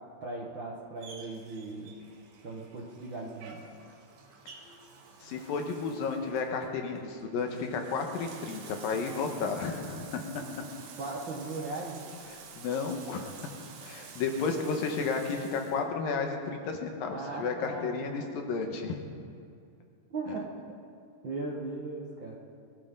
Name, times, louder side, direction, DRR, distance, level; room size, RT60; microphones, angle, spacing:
voice 1, 0.2-2.0 2.4-3.6 11.0-12.0 17.1-18.3 20.1-20.5 21.2-22.4, right 3 dB, 55° right, -3 dB, 1.3 m, -38 dB
Bathtub (filling or washing), 1.0-15.8, right 5 dB, 90° right, 3.3 m, -50 dB
voice 2, 5.2-10.4 12.6-13.3 13.8-19.0 20.3-20.4, left 4 dB, 80° left, 3 dB, 3.0 m, -32 dB
22.0 x 14.5 x 3.8 m, 2.5 s
omnidirectional pair, 4.1 m